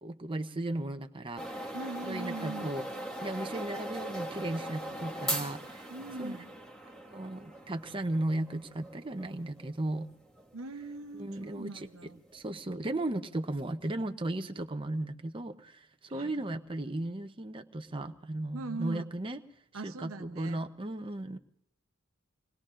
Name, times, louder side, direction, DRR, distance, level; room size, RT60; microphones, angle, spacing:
voice 1, 0.0-1.7 2.0-2.9 3.2-5.9 6.2-6.4 7.1-10.1 11.1-19.4 19.7-21.4, right 1 dB, 25° right, 6 dB, 0.7 m, -36 dB
sound 1, 1.4-12.5, right 1 dB, 5° left, 1.7 m, -41 dB
voice 2, 1.7-2.7 5.9-6.5 10.5-12.2 16.1-16.3 18.5-19.0 19.7-20.6, right 3 dB, 80° right, 9 dB, 0.9 m, -41 dB
27.0 x 20.5 x 2.5 m, 0.72 s
head